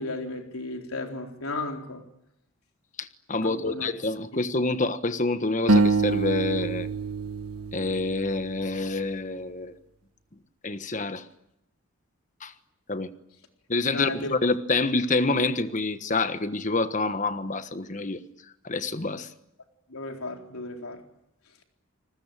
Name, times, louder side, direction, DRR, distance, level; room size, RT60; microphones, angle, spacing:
voice 1, 0.0-2.0 3.4-3.9 13.9-14.4 19.9-21.0, left 2 dB, 80° left, 3 dB, 4.1 m, -34 dB
voice 2, 3.0-6.9 7.7-9.8 10.6-11.2 12.4-12.5 12.9-13.1 13.7-18.2 18.6-19.3, left 3 dB, 35° left, 11 dB, 1.3 m, -27 dB
sound 1, 5.7-8.9, right 3 dB, 90° right, 1.6 m, -25 dB
29.0 x 20.5 x 9.0 m, 0.81 s
head